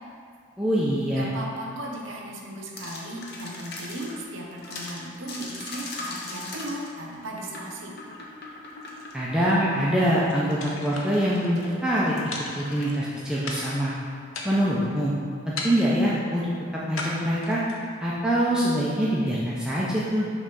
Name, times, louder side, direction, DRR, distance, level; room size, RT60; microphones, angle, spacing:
voice 1, 0.6-1.3 9.1-12.1 12.5-13.9 14.4-15.1 15.5-17.6 18.0-20.3, equal, 5° right, -7 dB, 0.5 m, -24 dB
voice 2, 1.1-7.9, right 1 dB, 65° right, -1 dB, 0.9 m, -36 dB
sound 1, 2.8-4.2 4.6-13.0, left 2 dB, 55° left, 0.8 m, -40 dB
sound 2, 10.6-11.5 12.3-13.1 13.5-13.9 14.3-14.9 15.6-16.1 17.0-17.9, left 2 dB, 80° left, 0.8 m, -36 dB
6.1 x 3.3 x 5.3 m, 2.3 s
head